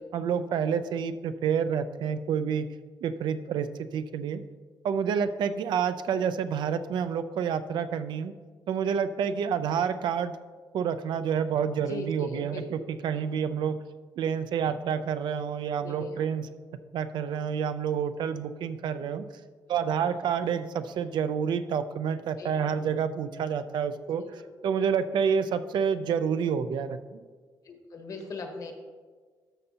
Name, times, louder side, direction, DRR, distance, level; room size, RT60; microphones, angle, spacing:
voice 1, 0.1-2.7 3.0-4.4 4.8-8.3 8.7-10.3 10.7-13.8 14.2-16.5 16.9-19.2 19.7-24.2 24.6-27.2, right 7 dB, 75° right, 11 dB, 0.4 m, -28 dB
voice 2, 11.8-12.7 13.1-13.2 15.8-16.3 19.9-20.1 22.4-22.5 24.2-24.3 27.6-28.7, left 3 dB, 50° left, 4 dB, 1.1 m, -39 dB
12.0 x 6.8 x 2.8 m, 1.5 s
wide cardioid pair, 160°, 8 cm